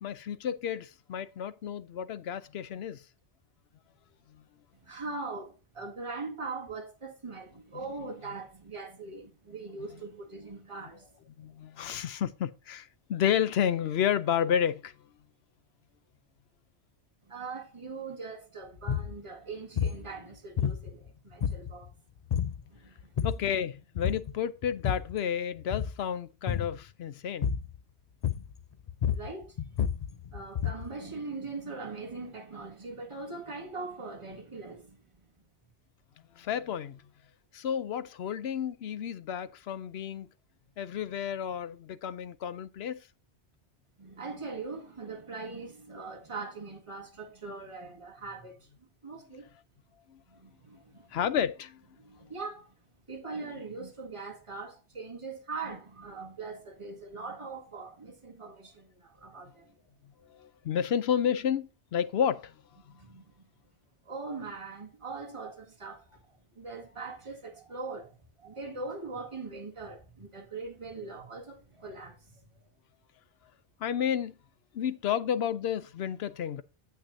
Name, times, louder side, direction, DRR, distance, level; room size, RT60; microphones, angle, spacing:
voice 1, 0.0-3.0 11.4-14.9 23.2-27.5 36.4-37.0 37.5-40.3 40.8-43.0 50.1-50.2 51.1-51.8 60.4-62.5 73.8-74.3 74.7-76.6, left 9 dB, 70° left, 0.9 m, -31 dB
voice 2, 4.7-11.1 17.2-21.9 22.7-23.2 29.1-29.6 30.3-35.3 44.0-48.7 49.0-49.5 50.3-51.2 52.0-52.7 53.1-59.7 62.9-63.4 64.0-72.7, right 3 dB, 30° right, 1.8 m, -41 dB
sound 1, 18.8-19.1 19.8-20.1 20.6-21.1 21.4-21.9 22.3-22.6 23.0-23.5 24.0-24.3 24.6-25.2 25.6-26.0 26.5-26.8 27.4-27.8 28.2-28.6 28.9-30.9, left 8 dB, 45° left, 0.6 m, -30 dB
8.9 x 8.3 x 2.7 m
omnidirectional pair, 1.1 m